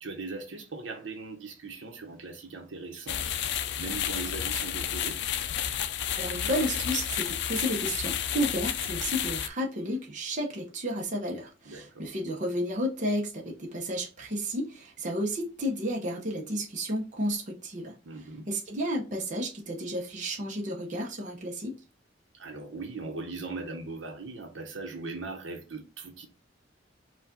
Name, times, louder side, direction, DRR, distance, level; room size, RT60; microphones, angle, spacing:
voice 1, 0.0-5.2 11.7-12.1 18.0-18.5 22.3-26.3, right 3 dB, 80° right, 1.0 m, -39 dB
sound 1, 3.1-9.5, left 9 dB, 65° left, 0.4 m, -31 dB
voice 2, 6.2-18.0 18.5-21.8, equal, 45° right, 0.8 m, -32 dB
4.7 x 2.4 x 3.7 m
head